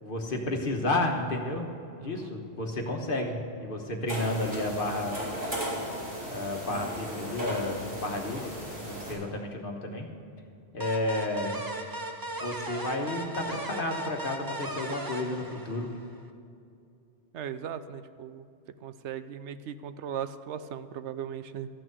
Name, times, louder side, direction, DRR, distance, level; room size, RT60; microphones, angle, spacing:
voice 1, 0.0-1.7 2.0-5.2 6.3-8.5 8.8-10.1 10.7-11.6 12.4-15.9, left 2 dB, 50° left, 3 dB, 1.4 m, -31 dB
voice 2, 2.0-2.3 17.3-18.5 18.8-21.7, right 8 dB, 75° right, 12 dB, 0.9 m, -38 dB
sound 1, 4.1-9.1, equal, 50° right, 3.9 m, -36 dB
sound 2, 10.8-16.2, right 2 dB, 25° right, 0.5 m, -37 dB
14.0 x 6.1 x 8.0 m, 2.5 s
omnidirectional pair, 1.2 m